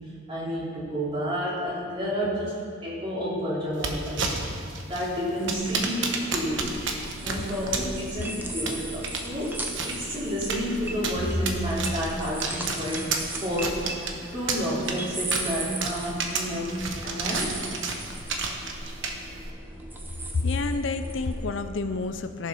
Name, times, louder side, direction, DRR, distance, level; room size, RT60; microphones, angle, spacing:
voice 1, 0.3-4.3 4.8-6.8 7.2-13.1 13.4-17.6, equal, 25° right, -6 dB, 2.8 m, -30 dB
sound 1, 3.7-19.5, right 4 dB, 60° right, 1.1 m, -33 dB
sound 2, 5.3-21.5, right 1 dB, 10° right, 0.8 m, -38 dB
voice 2, 20.4-22.5, left 3 dB, 65° left, 9 dB, 0.5 m, -29 dB
14.5 x 7.1 x 5.6 m, 2.3 s
head